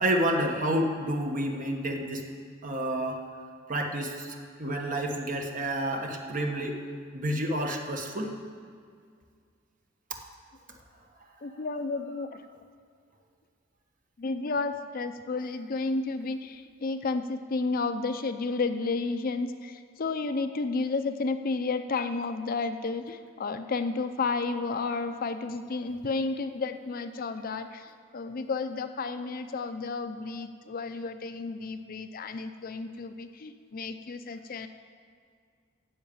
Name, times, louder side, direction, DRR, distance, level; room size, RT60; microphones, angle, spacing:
voice 1, 0.0-2.2 2.6-3.2 3.7-6.8 7.1-8.3, right 1 dB, 40° right, 2 dB, 1.2 m, -29 dB
voice 2, 11.4-12.5 14.2-34.7, left 3 dB, 45° left, 9 dB, 0.5 m, -32 dB
10.5 x 7.4 x 8.6 m, 2.1 s
head